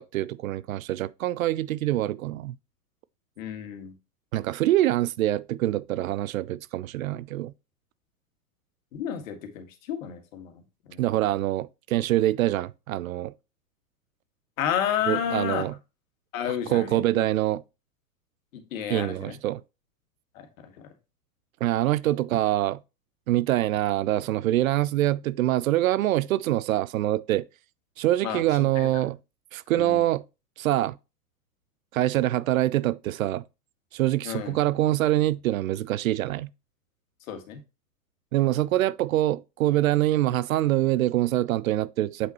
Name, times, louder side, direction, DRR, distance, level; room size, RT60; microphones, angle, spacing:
voice 1, 0.0-2.6 4.3-7.5 11.0-13.3 15.1-15.7 16.7-17.6 18.9-19.6 21.6-22.8 23.3-27.5 28.0-29.2 29.5-30.2 30.6-31.0 31.9-33.4 33.9-36.5 38.3-42.3, right 14 dB, 60° right, 0.5 m, -25 dB
voice 2, 3.4-3.9 8.9-11.0 14.6-15.7 16.3-17.3 18.5-19.4 20.3-20.9 28.2-29.1 29.8-30.0 34.2-34.6 37.3-37.6, left 9 dB, 55° left, 2.0 m, -32 dB
8.0 x 5.9 x 3.0 m
hypercardioid pair, 110°, 47 cm